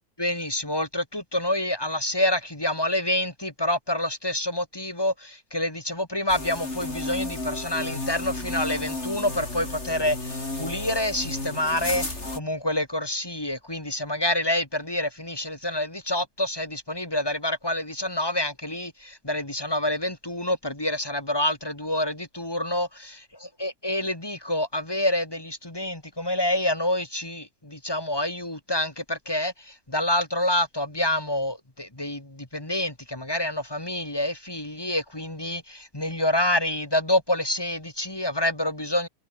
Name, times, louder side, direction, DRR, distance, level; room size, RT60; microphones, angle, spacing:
voice 1, 0.2-23.1 23.6-39.1, left 1 dB, 15° left, 2.4 m, -27 dB
sound 1, 6.3-12.4, left 2 dB, 45° left, 5.1 m, -33 dB
omnidirectional pair, 1.7 m